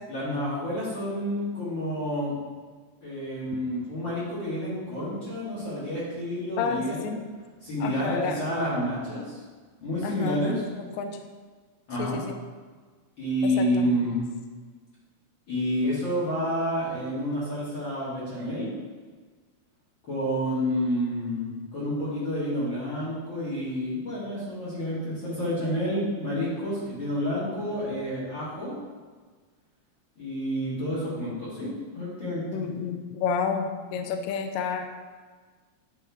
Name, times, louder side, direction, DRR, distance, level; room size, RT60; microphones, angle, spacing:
voice 1, 0.1-2.3 3.0-7.1 7.6-9.4 9.8-10.6 11.9-12.2 13.2-14.3 15.5-18.7 20.1-28.8 30.2-32.6, equal, 40° left, -10 dB, 2.2 m, -29 dB
voice 2, 6.6-7.2 7.8-8.4 10.0-11.2 12.0-12.3 13.4-14.2 32.5-34.9, left 6 dB, 80° left, 6 dB, 1.7 m, -31 dB
8.7 x 3.6 x 3.5 m, 1.4 s
omnidirectional pair, 3.7 m